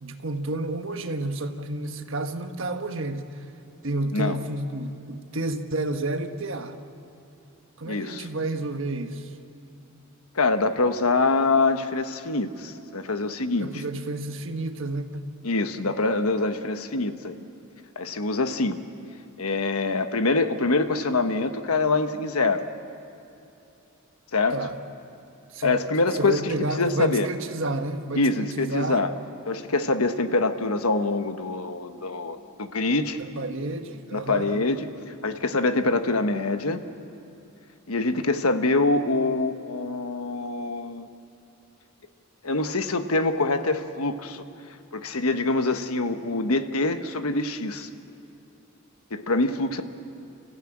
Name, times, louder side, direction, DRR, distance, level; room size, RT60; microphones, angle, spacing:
voice 1, 0.0-3.4 3.8-6.8 7.8-9.3 13.6-15.3 24.5-24.8 25.5-25.8 26.2-29.0 33.2-34.6, right 2 dB, 60° right, 6 dB, 1.4 m, -30 dB
voice 2, 7.8-8.3 10.3-13.8 15.4-17.3 18.0-18.8 19.4-22.6 24.3-24.6 25.6-27.3 28.2-29.1 29.5-33.2 34.1-34.9 35.2-36.8 37.9-41.1 42.4-44.5 44.9-47.9 49.1-49.8, left 3 dB, 85° left, 8 dB, 1.2 m, -25 dB
30.0 x 15.0 x 8.8 m, 2.8 s
head